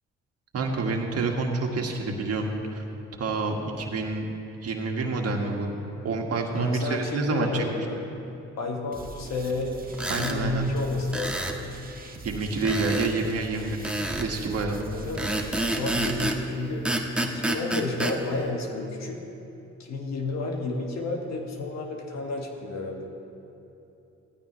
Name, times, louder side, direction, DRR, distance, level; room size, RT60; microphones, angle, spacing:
voice 1, 0.5-2.8 3.2-4.3 4.6-5.7 6.0-7.7 10.1-10.7 12.2-13.8 14.2-14.8, right 3 dB, 55° right, 2 dB, 1.8 m, -28 dB
voice 2, 6.6-8.0 8.6-9.8 10.2-11.5 14.9-15.3 15.6-16.9 17.2-19.2 19.8-23.1, left 2 dB, 65° left, 2 dB, 1.8 m, -31 dB
sound 1, 8.9-16.3, right 3 dB, 30° right, 1.5 m, -42 dB
sound 2, 9.9-10.4 11.1-11.6 12.6-13.1 13.8-14.3 15.2-16.4 16.8-18.2, right 1 dB, 5° right, 1.3 m, -28 dB
16.5 x 14.5 x 3.2 m, 3.0 s
supercardioid pair, 60°, 29 cm